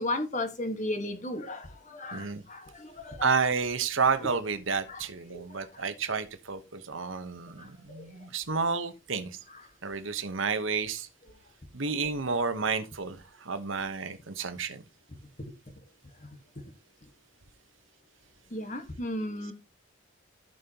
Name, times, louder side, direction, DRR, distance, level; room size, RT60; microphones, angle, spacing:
voice 1, 0.0-3.3 4.9-5.0 5.3-5.8 7.6-8.1 15.4-15.5 16.2-16.3 18.5-19.5, left 1 dB, 35° left, 1.4 m, -35 dB
voice 2, 2.1-2.4 3.2-9.4 9.8-11.1 11.7-14.8, right 5 dB, 70° right, 1.0 m, -30 dB
15.0 x 5.4 x 2.9 m
head